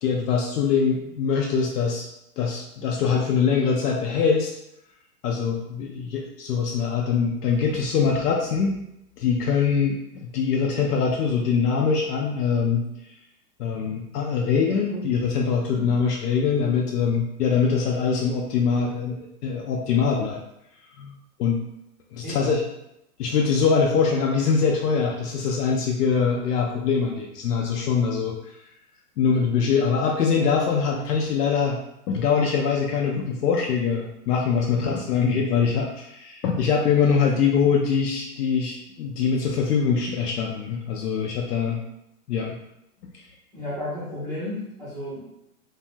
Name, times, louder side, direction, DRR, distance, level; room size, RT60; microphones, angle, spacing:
voice 1, 0.0-2.1 2.4-4.5 5.2-8.8 9.2-12.8 13.6-20.4 21.0-21.6 22.1-22.6 23.2-28.6 29.2-31.8 32.1-41.8 42.3-42.6 43.1-43.2, left 6 dB, 85° left, 0 dB, 0.6 m, -23 dB
voice 2, 22.2-22.6 34.7-35.0 43.5-45.2, left 1 dB, 10° right, -12 dB, 0.7 m, -33 dB
2.5 x 2.1 x 3.3 m, 0.82 s
hypercardioid pair, 155°, 46 cm